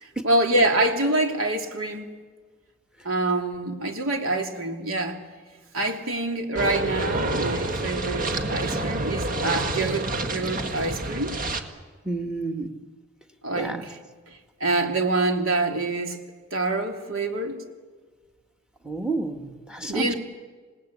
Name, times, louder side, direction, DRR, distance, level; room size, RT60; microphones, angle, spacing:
voice 1, 0.0-2.1 3.0-5.2 5.7-11.3 13.4-14.0 14.3-16.2 16.5-17.6 19.9-20.1, right 2 dB, 85° right, 3 dB, 3.0 m, -26 dB
sound 1, 6.6-11.6, right 2 dB, 45° right, 1.9 m, -28 dB
voice 2, 12.1-12.7 13.6-13.9 18.8-20.1, right 3 dB, 5° right, 5 dB, 1.9 m, -30 dB
27.5 x 19.0 x 8.4 m, 1.4 s
head